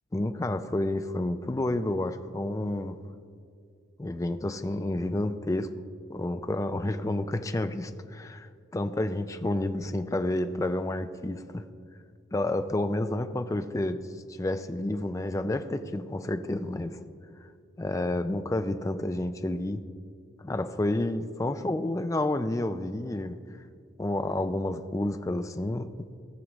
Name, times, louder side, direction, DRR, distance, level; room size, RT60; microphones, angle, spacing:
voice 1, 0.1-3.0 4.0-5.7 6.1-11.6 12.3-14.0 14.3-17.0 17.8-19.8 20.4-23.3 24.0-25.9, left 1 dB, 15° left, 9 dB, 0.4 m, -30 dB
18.0 x 6.3 x 3.1 m, 2.3 s
head